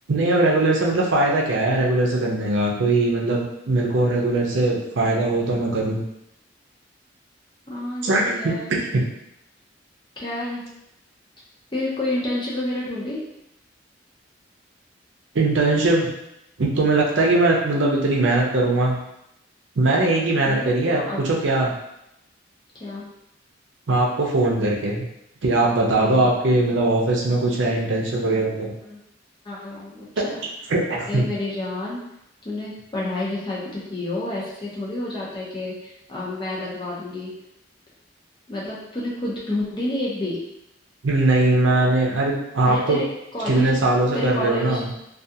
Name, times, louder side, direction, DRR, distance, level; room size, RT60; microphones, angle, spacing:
voice 1, 0.1-6.0 8.0-9.0 15.3-16.1 16.6-19.0 19.8-21.7 23.9-25.0 25.4-28.7 30.2-30.3 30.7-31.3 41.0-43.0 43.5-44.9, right 2 dB, 75° right, -2 dB, 0.6 m, -20 dB
voice 2, 7.7-8.7 10.2-10.6 11.7-13.2 20.4-21.2 22.8-23.0 26.0-26.7 28.8-29.0 29.4-30.4 31.1-32.0 32.4-37.3 38.5-40.4 42.6-43.0 43.3-43.8 44.1-44.8, left 1 dB, 25° left, -6 dB, 0.6 m, -29 dB
2.3 x 2.3 x 2.7 m, 0.83 s
head